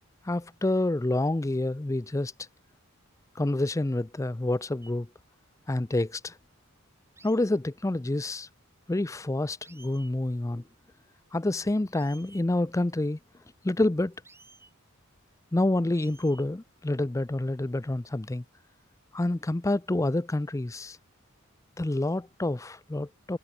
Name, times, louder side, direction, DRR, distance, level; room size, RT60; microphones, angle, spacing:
voice 1, 0.3-2.3 3.4-5.1 5.7-6.4 7.2-8.5 8.9-10.6 11.3-13.2 13.6-14.1 15.5-18.4 19.1-21.0 21.8-23.4, left 2 dB, 15° left, 0.5 m, -28 dB
sound 1, 4.8-5.0 7.2-7.4 9.1-9.2 9.6-10.1 11.9-12.4 14.1-14.7 15.9-16.5 17.3-17.7, right 3 dB, 10° right, 3.4 m, -55 dB
head